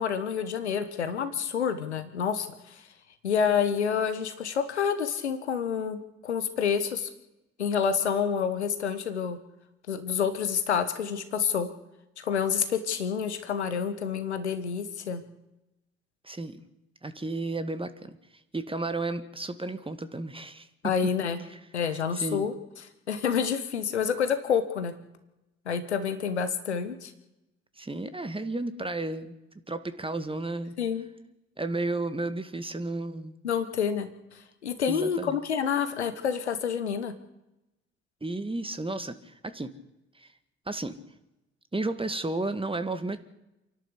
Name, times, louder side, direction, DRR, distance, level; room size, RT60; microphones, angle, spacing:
voice 1, 0.0-2.5 3.2-7.1 7.6-9.4 9.9-11.7 12.2-15.2 20.8-21.4 21.7-22.5 23.1-24.9 25.7-27.1 30.8-31.1 33.4-34.1 34.6-37.1, left 7 dB, 85° left, 10 dB, 1.3 m, -28 dB
voice 2, 16.2-16.6 17.0-18.2 18.5-20.7 21.9-22.5 27.8-29.3 29.7-30.7 31.6-33.3 34.9-35.4 38.2-39.7 40.2-40.3 40.7-40.9 41.7-43.3, right 2 dB, 15° right, 11 dB, 2.0 m, -33 dB
28.0 x 11.5 x 8.2 m, 0.93 s
figure-of-eight pair, 40°, 33 cm